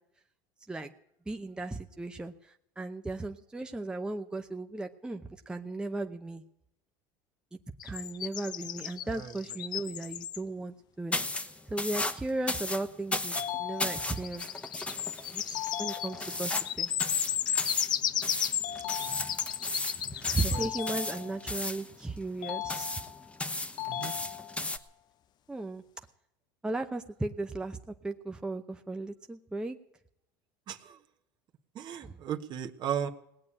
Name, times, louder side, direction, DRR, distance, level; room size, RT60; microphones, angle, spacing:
voice 1, 1.3-6.4 7.8-11.2 11.7-14.5 15.3-16.9 20.2-22.9 25.5-26.0 26.6-29.8 32.0-32.2, right 2 dB, 10° right, 5 dB, 0.8 m, -36 dB
sound 1, 7.8-10.4 14.0-21.2, left 10 dB, 40° left, 0.6 m, -34 dB
sound 2, 11.1-24.8, left 2 dB, 10° left, 1.1 m, -36 dB
sound 3, 13.4-14.4 15.5-16.5 18.6-19.7 20.5-21.6 22.4-23.3 23.8-24.8, left 11 dB, 65° left, 1.3 m, -39 dB
voice 2, 31.7-33.1, right 9 dB, 45° right, 5 dB, 1.4 m, -36 dB
18.5 x 8.5 x 8.6 m, 0.77 s
supercardioid pair, 105°, 11 cm